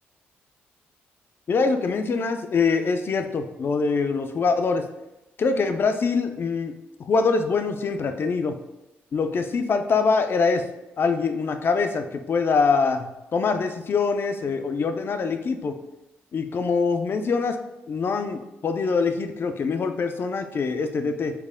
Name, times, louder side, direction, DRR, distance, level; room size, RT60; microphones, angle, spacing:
voice 1, 1.5-4.8 5.4-6.7 7.1-8.5 9.1-10.6 11.0-15.7 16.3-17.6 17.9-21.3, left 4 dB, 50° left, 7 dB, 0.4 m, -24 dB
4.5 x 2.1 x 3.5 m, 0.98 s
supercardioid pair, 55°, 5 cm